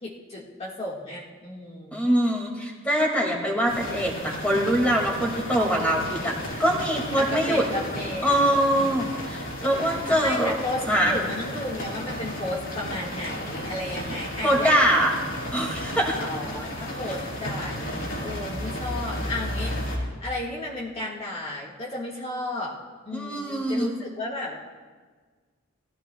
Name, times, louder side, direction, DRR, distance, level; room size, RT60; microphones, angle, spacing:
voice 1, 0.0-2.1 7.1-8.5 8.7-9.2 9.9-14.8 16.2-22.8 23.0-24.6, left 1 dB, 30° left, -5 dB, 1.6 m, -34 dB
voice 2, 1.9-6.3 6.6-7.7 8.2-10.6 10.9-11.2 14.4-15.1 15.5-16.2 23.1-23.9, equal, 5° left, -1 dB, 1.9 m, -23 dB
sound 1, 3.7-20.0, equal, 85° left, 4.0 m, -33 dB
19.0 x 15.0 x 2.2 m, 1.5 s
head